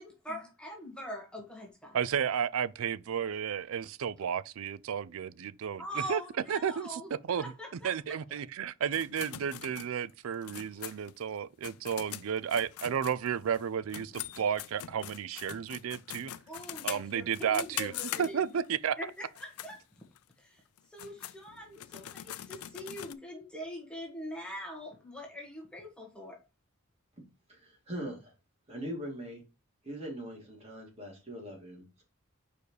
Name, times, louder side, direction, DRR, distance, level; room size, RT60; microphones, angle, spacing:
voice 1, 0.0-1.9 5.8-7.1 7.4-7.9 16.5-18.4 19.0-19.8 20.4-20.6 20.9-26.4, equal, 5° left, 1.5 m, -43 dB
voice 2, 1.9-6.2 6.5-16.3 16.8-17.9 18.2-19.0, right 8 dB, 70° right, 0.4 m, -33 dB
sound 1, 8.9-13.6 13.9-18.7 19.2-19.7 20.2-20.3 20.8-23.1, left 13 dB, 90° left, 0.4 m, -42 dB
voice 3, 27.5-28.3 28.7-29.4 29.8-32.0, equal, 30° right, 2.6 m, -41 dB
5.0 x 4.7 x 4.7 m
head